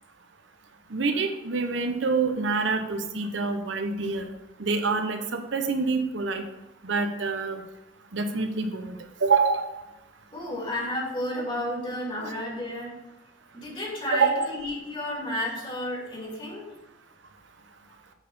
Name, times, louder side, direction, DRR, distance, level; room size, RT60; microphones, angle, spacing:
voice 1, 0.9-4.3 4.6-6.4 6.8-7.6 8.1-9.7 14.1-14.5, right 4 dB, 85° right, 6 dB, 0.9 m, -26 dB
voice 2, 10.3-12.9 13.5-16.7, equal, 30° left, -4 dB, 2.4 m, -32 dB
8.2 x 4.2 x 5.5 m, 0.97 s
head